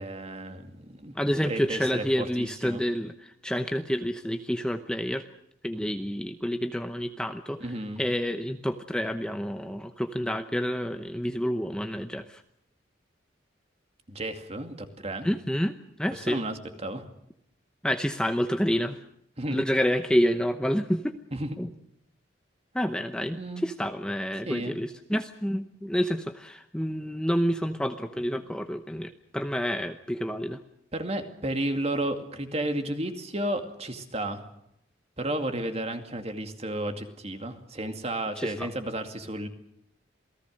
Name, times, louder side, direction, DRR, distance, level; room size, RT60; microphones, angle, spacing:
voice 1, 0.0-2.8 7.6-8.0 14.1-15.3 16.1-17.0 19.4-19.6 21.3-21.6 23.3-23.6 24.5-24.8 30.9-34.4 35.2-39.5, right 1 dB, 30° right, 6 dB, 2.3 m, -33 dB
voice 2, 1.2-5.2 5.6-7.7 8.0-12.4 15.2-16.4 17.8-19.0 19.5-21.1 21.6-21.7 22.7-30.6 38.4-38.7, equal, 5° left, 7 dB, 0.8 m, -28 dB
28.0 x 18.5 x 6.5 m, 0.78 s
head